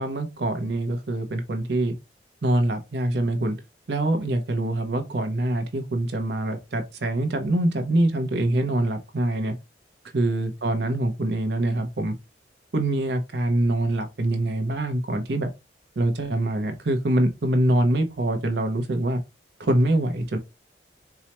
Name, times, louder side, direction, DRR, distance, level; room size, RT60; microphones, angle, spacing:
voice 1, 0.0-1.9 2.4-3.6 3.9-9.5 10.1-12.1 12.7-15.5 16.0-19.2 19.6-20.4, right 1 dB, 65° right, 0.7 m, -24 dB
4.6 x 2.1 x 2.9 m
head